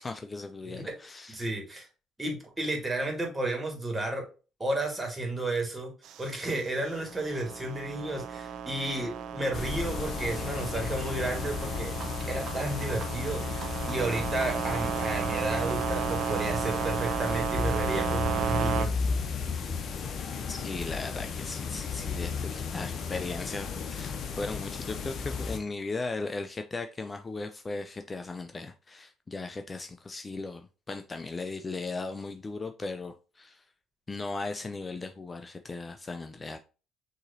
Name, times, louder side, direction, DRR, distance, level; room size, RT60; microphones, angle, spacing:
voice 1, 0.0-1.4 20.5-33.6 34.1-36.6, left 3 dB, 30° left, 6 dB, 0.5 m, -37 dB
voice 2, 1.3-1.9 2.2-4.3 4.6-5.9 6.2-11.9 12.3-18.9, right 2 dB, 20° right, 2 dB, 2.1 m, -32 dB
sound 1, 6.0-18.9, right 7 dB, 65° right, 0.5 m, -34 dB
sound 2, 9.5-25.6, left 5 dB, 55° left, 0.8 m, -34 dB
sound 3, 10.9-17.4 17.9-18.6, right 4 dB, 50° right, 1.4 m, -44 dB
6.3 x 3.0 x 2.7 m, 0.34 s
hypercardioid pair, 60°, 0 cm